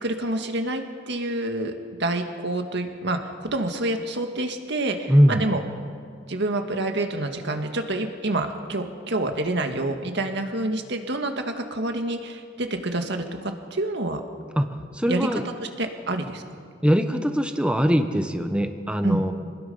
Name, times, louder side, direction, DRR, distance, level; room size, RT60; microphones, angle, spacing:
voice 1, 0.0-1.7 2.0-5.6 6.3-14.2 15.1-15.3 15.8-16.4 19.0-19.2, right 2 dB, 65° right, 5 dB, 1.9 m, -27 dB
voice 2, 5.1-5.5 14.6-15.4 16.8-19.3, equal, 5° right, 7 dB, 1.0 m, -21 dB
26.5 x 20.0 x 5.6 m, 2.1 s
head